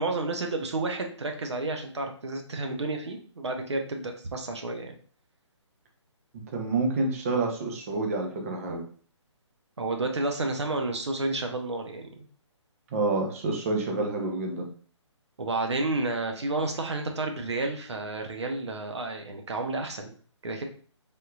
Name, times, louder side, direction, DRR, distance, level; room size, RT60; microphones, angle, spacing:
voice 1, 0.0-5.0 9.8-12.3 15.4-20.1 20.4-20.6, right 2 dB, 65° right, 3 dB, 0.7 m, -31 dB
voice 2, 6.3-8.8 12.9-14.7, right 3 dB, 30° right, 2 dB, 0.6 m, -28 dB
3.5 x 2.7 x 2.3 m, 0.43 s
figure-of-eight pair, 140°, 16 cm